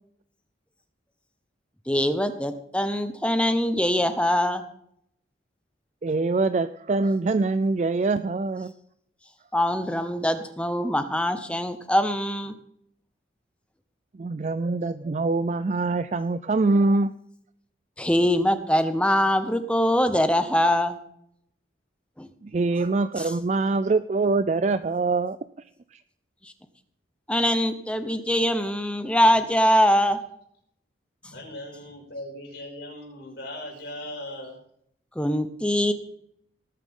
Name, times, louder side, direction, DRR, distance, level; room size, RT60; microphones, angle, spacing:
voice 1, 1.9-4.6 9.5-12.5 18.0-21.0 22.2-22.3 26.4-26.5 27.3-30.2 35.2-35.9, equal, 5° left, 9 dB, 0.9 m, -23 dB
voice 2, 6.0-8.7 14.1-17.1 22.4-26.0, right 3 dB, 40° right, 12 dB, 0.3 m, -24 dB
voice 3, 31.2-34.6, left 1 dB, 65° left, -1 dB, 5.9 m, -38 dB
19.0 x 9.0 x 3.7 m, 0.71 s
head